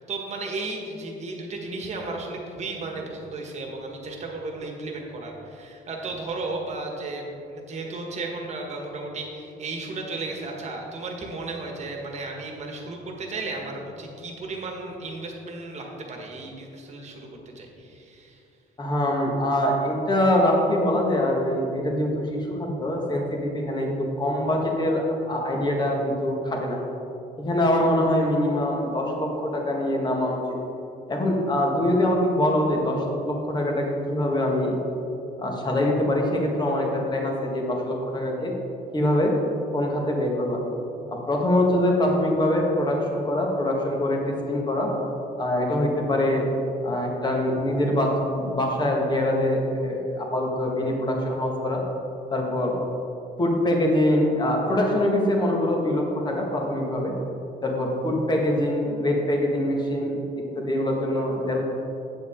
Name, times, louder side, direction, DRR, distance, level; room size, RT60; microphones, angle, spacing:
voice 1, 0.0-18.4, right 3 dB, 40° right, 1 dB, 1.6 m, -34 dB
voice 2, 18.8-23.9 24.2-26.8 27.4-30.4 31.1-34.8 35.4-38.5 38.9-39.3 39.7-40.6 41.1-44.9 45.4-46.5 46.8-51.8 52.3-52.8 53.4-57.1 57.6-60.3 60.5-61.6, left 1 dB, 25° left, 0 dB, 1.6 m, -24 dB
8.5 x 7.8 x 3.7 m, 2.7 s
cardioid pair, 110°, 17 cm